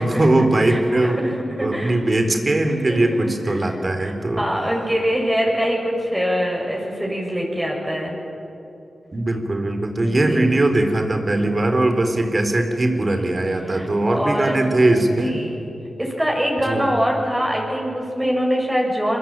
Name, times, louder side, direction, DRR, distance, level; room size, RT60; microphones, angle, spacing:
voice 1, 0.0-1.3 1.6-4.4 9.1-15.4 16.7-16.9, right 2 dB, 40° right, 6 dB, 4.0 m, -20 dB
voice 2, 0.7-2.0 2.9-4.1 4.4-8.2 10.0-10.5 13.6-14.6 15.2-15.5 16.0-19.2, equal, 10° right, -1 dB, 7.4 m, -24 dB
28.0 x 22.0 x 9.2 m, 2.7 s
cardioid pair, 50°, 0 cm